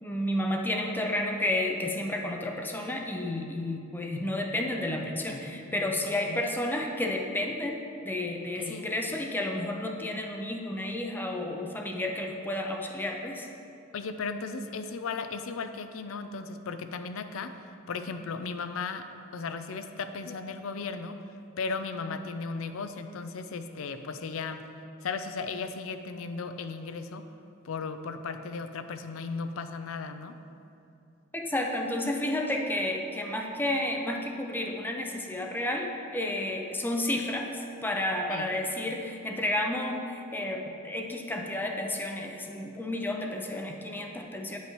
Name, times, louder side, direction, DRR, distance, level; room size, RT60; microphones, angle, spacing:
voice 1, 0.0-13.5 31.3-44.6, left 1 dB, 10° left, 1 dB, 0.5 m, -31 dB
voice 2, 6.0-6.4 8.6-8.9 13.9-21.2 21.6-24.6 25.0-27.3 27.6-30.4 38.3-38.6, left 4 dB, 85° left, 9 dB, 0.4 m, -36 dB
9.9 x 5.5 x 3.1 m, 2.6 s
head